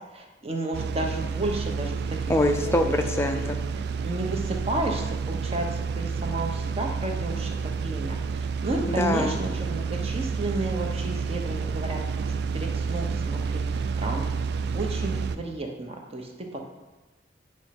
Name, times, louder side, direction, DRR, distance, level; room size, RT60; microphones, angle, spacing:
voice 1, 0.1-2.0 2.6-2.9 3.3-3.5 4.0-12.3 12.5-13.6 14.0-14.2 14.7-16.6, right 2 dB, 35° right, 2 dB, 0.9 m, -32 dB
sound 1, 0.7-15.4, right 5 dB, 65° right, 0.3 m, -30 dB
voice 2, 2.3-3.6 9.0-9.3, left 1 dB, 15° left, 5 dB, 0.4 m, -24 dB
8.6 x 3.2 x 5.9 m, 1.2 s
head